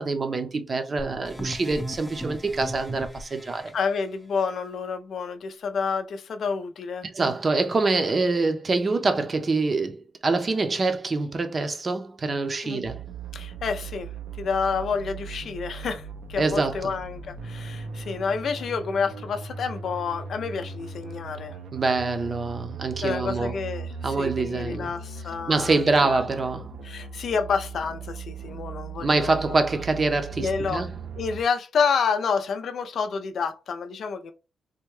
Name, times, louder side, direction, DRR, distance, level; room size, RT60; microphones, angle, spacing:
voice 1, 0.0-3.7 7.1-13.1 16.4-16.9 21.7-23.5 24.0-24.9 25.5-26.8 29.0-30.9, right 3 dB, 35° right, 0.6 m, -25 dB
sound 1, 1.0-3.7, right 1 dB, 5° left, 0.6 m, -36 dB
voice 2, 3.7-7.1 12.6-12.8 13.3-14.1 14.4-21.6 23.0-23.9 24.2-26.2 26.8-29.3 30.4-30.9 31.2-34.3, left 5 dB, 65° left, 0.5 m, -29 dB
sound 2, 12.8-31.4, right 5 dB, 80° right, 0.5 m, -38 dB
3.5 x 2.2 x 3.1 m
cardioid pair, 105°, 0 cm